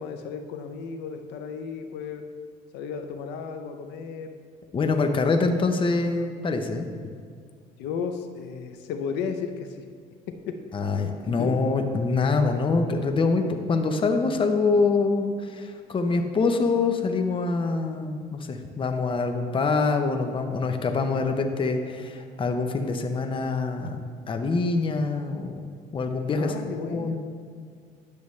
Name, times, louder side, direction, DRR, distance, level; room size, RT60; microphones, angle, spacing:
voice 1, 0.0-2.2 2.7-4.3 7.8-9.9 10.5-10.6 11.3-11.6 26.4-27.2, left 6 dB, 90° left, 6 dB, 0.6 m, -34 dB
voice 2, 4.7-6.9 10.7-24.0 24.3-25.6 25.9-26.5 26.9-27.2, left 4 dB, 30° left, 5 dB, 0.7 m, -25 dB
10.5 x 6.8 x 3.2 m, 2.1 s
cardioid pair, 110°, 17 cm